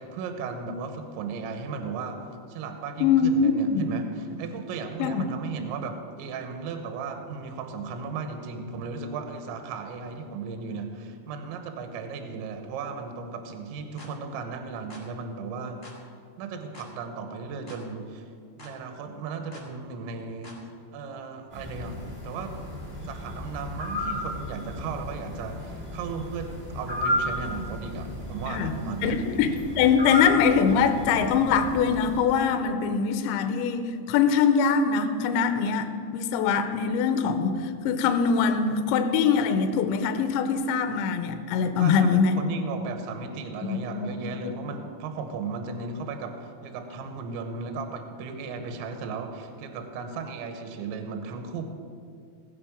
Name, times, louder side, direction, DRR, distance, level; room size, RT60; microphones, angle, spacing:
voice 1, 0.0-2.2 2.5-15.8 16.4-18.2 18.6-20.6 20.9-22.6 23.0-29.2 41.8-51.7, right 5 dB, 75° right, 6 dB, 3.1 m, -36 dB
voice 2, 3.0-3.9 5.0-5.2 28.5-28.7 29.0-42.4 43.6-44.5, left 6 dB, 80° left, 7 dB, 2.8 m, -23 dB
sound 1, 14.0-14.2 14.9-15.1 15.8-16.0 16.7-16.9 17.7-17.9 18.6-18.8 19.5-19.7 20.4-20.6, left 2 dB, 40° left, 1.0 m, -47 dB
sound 2, 21.5-32.2, left 1 dB, 5° right, 1.0 m, -33 dB
18.5 x 8.0 x 5.2 m, 2.3 s
omnidirectional pair, 5.9 m